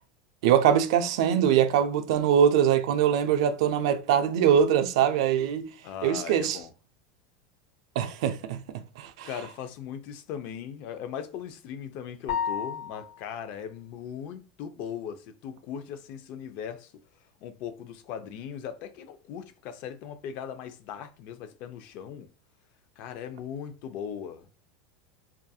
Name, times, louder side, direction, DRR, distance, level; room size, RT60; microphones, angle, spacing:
voice 1, 0.4-5.7 6.0-6.6 8.0-9.3, right 9 dB, 75° right, 0.4 m, -23 dB
voice 2, 5.8-6.7 9.2-16.9 17.4-22.3 23.0-24.5, left 8 dB, 55° left, 0.5 m, -39 dB
sound 1, 12.3-13.3, left 7 dB, 75° left, 1.1 m, -31 dB
2.6 x 2.4 x 2.3 m
supercardioid pair, 135°, 3 cm